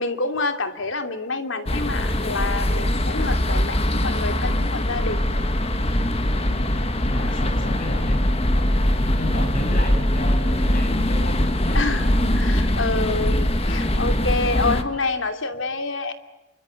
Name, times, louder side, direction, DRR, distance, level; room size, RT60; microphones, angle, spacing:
voice 1, 0.0-5.2 6.6-6.7 7.2-7.5 11.7-12.1 12.4-16.1, left 3 dB, 80° left, 6 dB, 2.8 m, -27 dB
sound 1, 1.7-14.8, left 1 dB, 30° left, 1.9 m, -22 dB
voice 2, 6.3-12.1, left 1 dB, 45° left, 6 dB, 7.6 m, -34 dB
28.5 x 24.5 x 8.2 m, 0.98 s
head